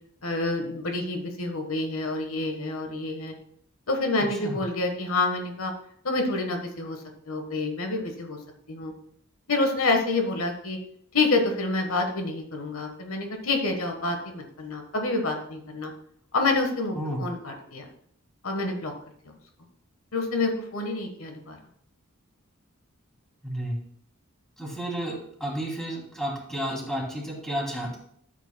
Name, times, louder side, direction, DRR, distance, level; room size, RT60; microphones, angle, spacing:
voice 1, 0.2-3.3 3.9-5.7 6.0-7.0 7.3-8.4 8.7-8.9 9.5-10.8 11.1-15.9 16.3-17.8 18.4-18.9 20.1-21.6, left 2 dB, 75° left, 4 dB, 1.3 m, -27 dB
voice 2, 17.0-17.3 23.4-23.8 24.6-25.1 25.4-28.0, right 1 dB, ahead, -3 dB, 2.7 m, -31 dB
13.0 x 8.1 x 2.2 m, 0.67 s
head